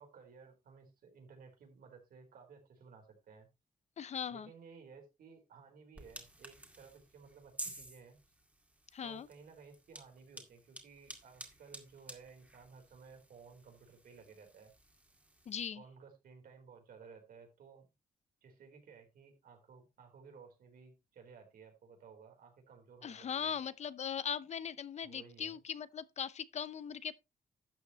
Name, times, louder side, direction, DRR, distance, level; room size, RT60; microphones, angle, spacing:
voice 1, 0.0-3.5 4.3-8.2 9.0-14.7 15.7-17.9 18.4-23.6 25.0-25.6, right 5 dB, 85° right, 4.1 m, -57 dB
voice 2, 4.0-4.5 8.9-9.3 15.5-15.8 23.0-27.1, left 8 dB, 50° left, 0.7 m, -39 dB
sound 1, 5.9-15.7, right 1 dB, 10° right, 2.1 m, -52 dB
12.5 x 8.3 x 3.1 m
wide cardioid pair, 155°, 14 cm